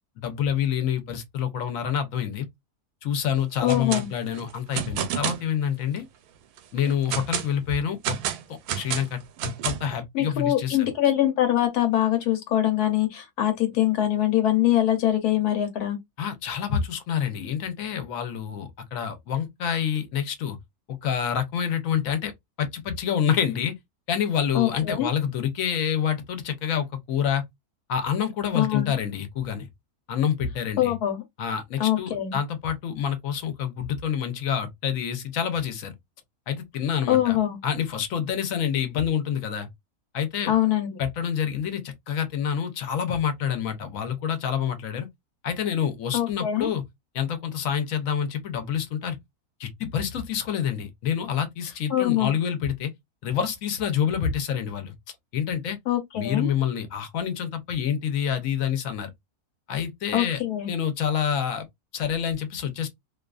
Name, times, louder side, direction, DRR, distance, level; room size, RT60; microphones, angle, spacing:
voice 1, 0.2-2.5 3.0-6.1 6.7-8.2 8.5-10.9 16.2-20.6 20.9-22.3 22.6-23.7 24.1-27.4 27.9-29.7 30.1-30.9 31.4-35.9 36.5-37.4 37.6-39.7 40.1-40.5 41.0-45.1 45.4-46.8 47.1-49.2 49.6-52.9 53.2-54.9 55.3-55.8 56.1-59.1 59.7-60.4 60.7-61.7 61.9-62.9, left 8 dB, 65° left, 1.0 m, -27 dB
sound 1, 3.5-4.0 4.3-5.5 6.0-6.1 6.6-7.5 8.0-10.0, right 9 dB, 80° right, 1.1 m, -30 dB
voice 2, 3.6-4.1 10.1-16.0 24.5-25.1 28.5-28.9 30.8-31.2 31.8-32.4 37.1-37.6 40.5-40.9 46.1-46.7 51.9-52.4 55.9-56.5 60.1-60.7, left 12 dB, 85° left, 1.2 m, -23 dB
2.6 x 2.4 x 2.3 m
omnidirectional pair, 1.6 m